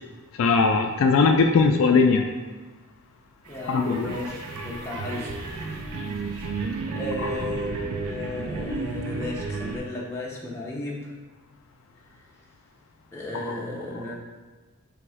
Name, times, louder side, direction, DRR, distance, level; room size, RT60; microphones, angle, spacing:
voice 1, 0.4-2.2 3.7-4.2, left 4 dB, 65° left, 4 dB, 0.3 m, -19 dB
voice 2, 3.5-5.3 6.9-11.1 13.1-14.2, left 2 dB, 10° left, -4 dB, 0.6 m, -34 dB
sound 1, 3.5-9.8, right 3 dB, 85° right, 0.6 m, -32 dB
3.5 x 3.0 x 4.8 m, 1.3 s
head